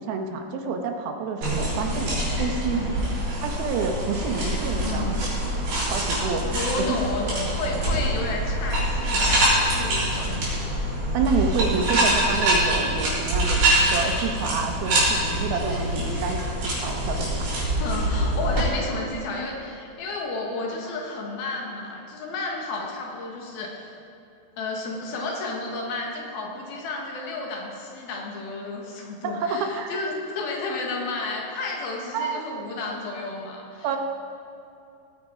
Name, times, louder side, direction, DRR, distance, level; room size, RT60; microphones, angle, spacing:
voice 1, 0.0-2.9 3.4-5.1 5.9-6.5 6.8-7.0 7.7-8.1 11.1-17.5 29.2-29.9 32.1-32.4 33.8-34.0, right 5 dB, 85° right, 4 dB, 2.9 m, -28 dB
sound 1, 1.4-18.6, right 1 dB, 70° right, 5.5 m, -25 dB
voice 2, 2.7-3.0 4.8-5.2 6.5-10.5 17.8-24.0 24.6-33.9, left 3 dB, 90° left, 0 dB, 3.6 m, -32 dB
18.0 x 9.2 x 5.1 m, 2.7 s
omnidirectional pair, 4.2 m